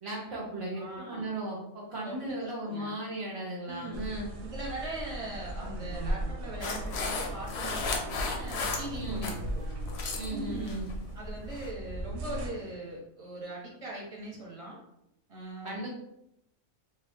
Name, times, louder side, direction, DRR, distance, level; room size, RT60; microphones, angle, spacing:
voice 1, 0.0-4.3 8.9-9.4 10.1-10.9 15.6-15.9, right 1 dB, 45° right, -5 dB, 0.4 m, -36 dB
voice 2, 0.7-1.3 2.0-2.9 3.6-4.0 4.4-9.6 10.3-10.8 11.1-14.8 15.3-15.9, right 1 dB, 30° right, -4 dB, 0.7 m, -41 dB
sound 1, 3.9-12.5, right 1 dB, 65° right, 0.8 m, -37 dB
sound 2, 6.6-9.4 9.7-10.3 10.7-10.9 11.5-11.7, left 4 dB, 65° left, 0.7 m, -34 dB
2.8 x 2.2 x 3.4 m, 0.80 s
omnidirectional pair, 1.4 m